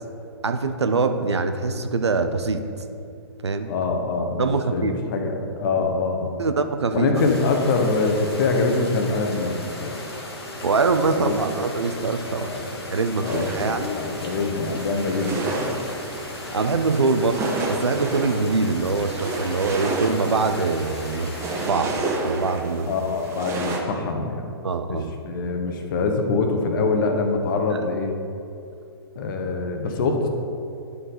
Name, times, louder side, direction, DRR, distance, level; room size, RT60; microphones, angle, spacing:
voice 1, 0.4-2.6 3.4-3.7 4.4-4.9 6.4-7.1 10.6-12.5 12.9-13.9 16.5-21.3 21.7-22.9 24.6-25.1 27.7-27.8 29.5-29.6, right 4 dB, 85° right, 8 dB, 0.6 m, -23 dB
voice 2, 3.7-6.3 6.9-10.0 11.1-11.5 12.3-12.8 13.2-15.8 22.8-24.5 24.9-28.1 29.2-30.3, left 3 dB, 50° left, 3 dB, 1.0 m, -24 dB
sound 1, 7.1-21.7, left 1 dB, 70° left, 1.5 m, -36 dB
sound 2, 13.2-23.8, right 2 dB, 20° right, 1.0 m, -31 dB
11.0 x 4.6 x 3.8 m, 2.5 s
figure-of-eight pair, 120°, 14 cm